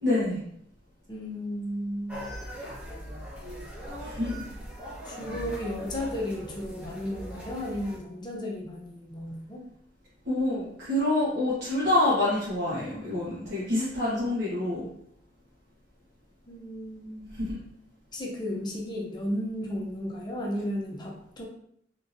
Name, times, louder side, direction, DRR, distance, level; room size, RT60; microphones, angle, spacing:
voice 1, 0.0-0.4 4.0-4.4 10.2-14.9 17.3-17.5, left 1 dB, 60° right, -10 dB, 1.1 m, -27 dB
voice 2, 1.1-2.2 5.0-9.6 16.5-17.3 18.1-21.4, left 1 dB, 25° left, -1 dB, 0.6 m, -34 dB
sound 1, 2.1-8.0, equal, 10° right, 1.0 m, -40 dB
3.6 x 2.8 x 2.6 m, 0.70 s
head